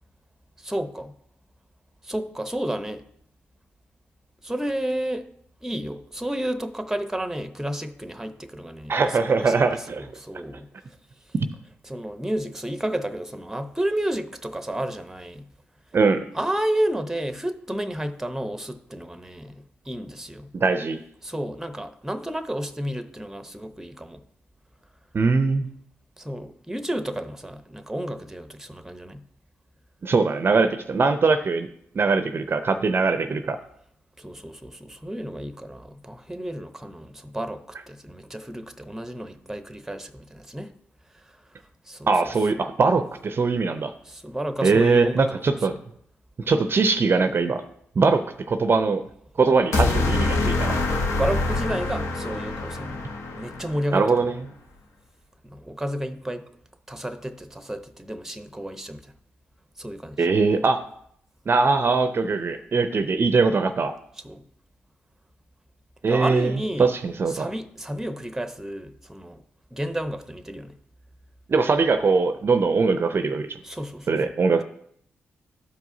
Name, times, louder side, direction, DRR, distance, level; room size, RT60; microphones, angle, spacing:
voice 1, 0.6-1.1 2.0-3.0 4.4-5.3 5.6-9.0 9.3-10.7 11.9-15.4 16.3-19.5 19.9-20.5 21.2-24.2 26.2-29.2 34.2-40.7 41.9-42.1 44.1-45.4 51.2-53.0 53.3-54.1 55.4-56.4 56.9-59.0 59.8-60.2 64.2-64.4 66.1-66.9 67.3-69.4 69.7-70.7 73.6-74.3, right 1 dB, 5° right, 0.7 m, -31 dB
voice 2, 8.9-10.1 11.3-11.5 15.9-16.2 20.5-21.0 25.1-25.7 30.0-31.7 31.9-33.6 42.1-43.9 44.6-45.8 46.5-47.6 48.0-49.0 49.4-50.8 53.9-54.4 60.2-60.8 61.5-64.0 66.0-67.5 71.5-73.6 74.1-74.6, right 4 dB, 45° right, 0.5 m, -21 dB
sound 1, 49.7-54.0, left 2 dB, 70° left, 0.9 m, -25 dB
13.0 x 4.7 x 2.7 m
supercardioid pair, 45°, 5 cm